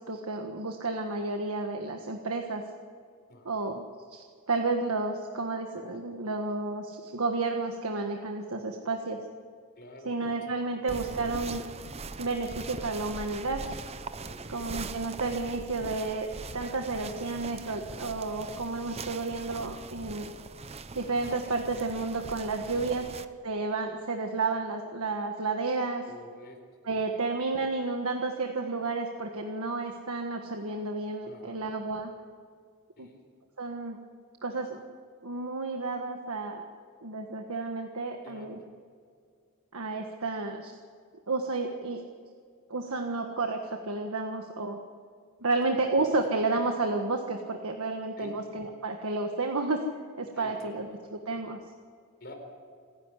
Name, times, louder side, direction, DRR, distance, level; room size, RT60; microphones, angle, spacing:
voice 1, 0.0-2.6 3.4-9.2 10.0-11.6 12.2-13.8 14.5-16.3 16.5-20.3 20.9-23.1 23.4-26.0 26.8-32.1 33.0-33.1 33.6-34.0 34.4-34.8 35.2-36.7 37.0-38.6 39.7-40.8 41.3-42.0 42.7-44.8 45.4-49.8 50.2-51.6, right 3 dB, 80° right, 3 dB, 1.5 m, -31 dB
voice 2, 9.8-10.1 14.3-14.6 19.3-19.4 22.7-23.0 26.1-26.6 31.2-31.6 33.0-33.2 38.2-38.6 48.2-48.3 50.3-50.7 52.2-52.3, left 1 dB, 45° left, 3 dB, 4.3 m, -48 dB
sound 1, 10.9-23.2, right 3 dB, 30° right, 0.7 m, -41 dB
27.5 x 10.5 x 9.8 m, 2.2 s
head